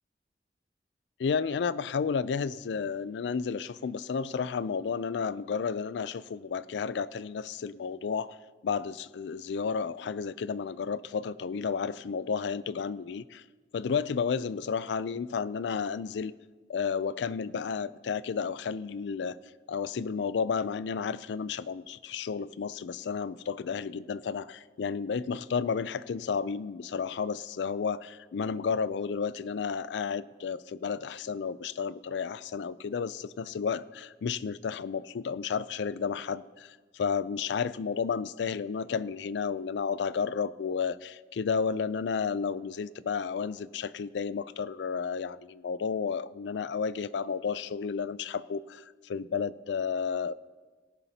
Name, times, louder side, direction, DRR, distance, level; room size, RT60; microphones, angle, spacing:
voice 1, 1.2-8.4 8.6-13.4 13.7-16.3 16.7-19.4 19.7-50.3, left 6 dB, 90° left, 18 dB, 0.4 m, -32 dB
18.0 x 11.0 x 2.8 m, 1.4 s
head